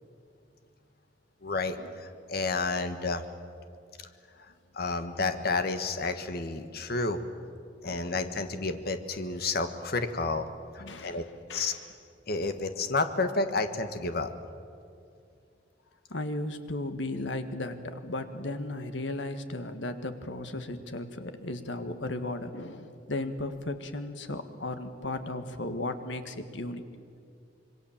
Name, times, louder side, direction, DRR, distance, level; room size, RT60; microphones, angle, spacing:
voice 1, 1.4-3.2 4.7-7.2 7.8-10.5 10.7-11.2 11.5-11.7 12.3-14.3, left 3 dB, 55° left, 8 dB, 1.5 m, -30 dB
voice 2, 7.8-8.2 10.8-11.2 11.5-11.9 16.1-26.8, left 2 dB, 80° left, 8 dB, 1.7 m, -35 dB
26.5 x 23.0 x 7.4 m, 2.4 s
head